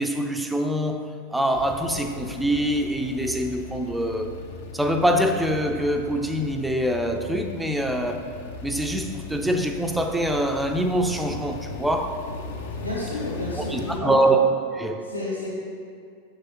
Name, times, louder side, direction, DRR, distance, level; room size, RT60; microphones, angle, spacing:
voice 1, 0.0-4.4 4.7-8.3 8.6-12.2 13.5-14.5 14.7-15.1, right 1 dB, 5° right, 5 dB, 0.4 m, -24 dB
sound 1, 1.5-14.0, left 3 dB, 55° left, 0.6 m, -38 dB
voice 2, 12.8-14.3 15.0-15.5, left 2 dB, 90° right, -6 dB, 1.2 m, -31 dB
6.6 x 6.2 x 2.9 m, 2.2 s
figure-of-eight pair, 90°, 0 cm